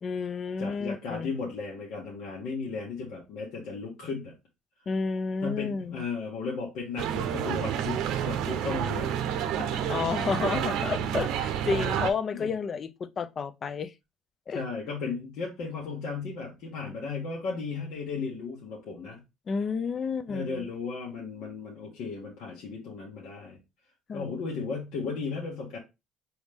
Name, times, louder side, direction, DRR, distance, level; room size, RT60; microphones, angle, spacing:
voice 1, 0.0-1.3 4.9-6.0 9.9-13.9 14.5-14.6 19.5-20.7 24.1-24.4, left 5 dB, 40° left, 0.5 m, -31 dB
voice 2, 0.6-4.3 5.4-9.1 9.9-10.0 11.0-11.1 12.3-12.5 14.5-19.2 20.3-23.6 24.1-25.8, left 4 dB, 70° left, 1.5 m, -35 dB
sound 1, 7.0-12.1, right 9 dB, 75° right, 0.7 m, -29 dB
4.8 x 3.1 x 3.4 m
supercardioid pair, 85°, 0 cm